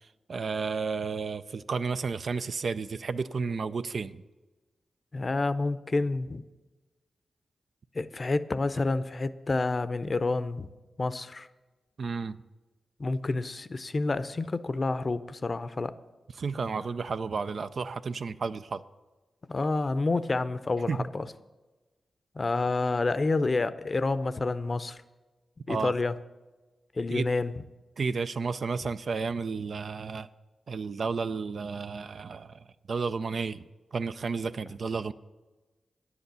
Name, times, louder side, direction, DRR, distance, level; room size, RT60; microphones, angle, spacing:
voice 1, 0.3-4.2 12.0-12.4 16.4-18.8 20.9-21.0 25.7-25.9 27.1-27.3 28.0-30.3 30.7-32.6 32.9-33.6 33.9-35.1, right 5 dB, 65° right, 12 dB, 0.4 m, -32 dB
voice 2, 5.1-6.5 7.9-10.7 11.0-11.5 13.0-15.9 19.5-21.3 22.3-25.0 25.7-26.2 26.9-27.6, left 3 dB, 45° left, 14 dB, 0.6 m, -29 dB
9.7 x 8.0 x 6.8 m, 1.2 s
cardioid pair, 50°, 0 cm